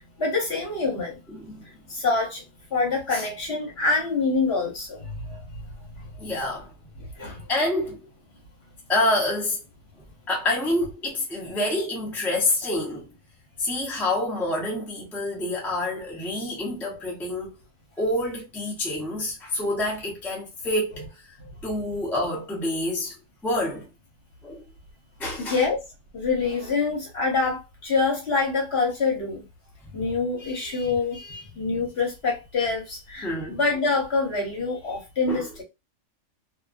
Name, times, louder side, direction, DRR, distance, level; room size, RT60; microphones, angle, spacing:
voice 1, 0.2-1.2 1.9-2.4 2.7-5.5 6.2-6.3 7.2-7.4 25.4-25.8 26.1-29.4 29.9-35.6, left 4 dB, 50° left, 1.1 m, -26 dB
voice 2, 1.3-1.6 3.1-3.3 6.2-6.7 7.5-8.0 8.9-9.6 10.3-13.1 13.6-17.6 18.0-21.3 21.6-23.1 23.4-23.9 24.4-24.6 25.2-25.6 29.8-30.0 33.2-33.6 35.3-35.5, left 1 dB, ahead, 0.6 m, -27 dB
2.6 x 2.5 x 2.4 m
omnidirectional pair, 1.5 m